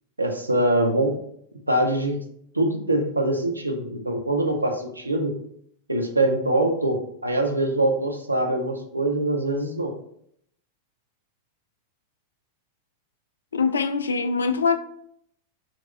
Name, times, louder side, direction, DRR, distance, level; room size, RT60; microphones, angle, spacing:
voice 1, 0.2-1.1 1.7-2.2 2.5-5.3 5.9-9.9, right 1 dB, 85° right, 0.6 m, -23 dB
voice 2, 13.5-14.8, left 5 dB, 70° left, 0.3 m, -23 dB
4.0 x 3.0 x 3.2 m
figure-of-eight pair, 90°, 0 cm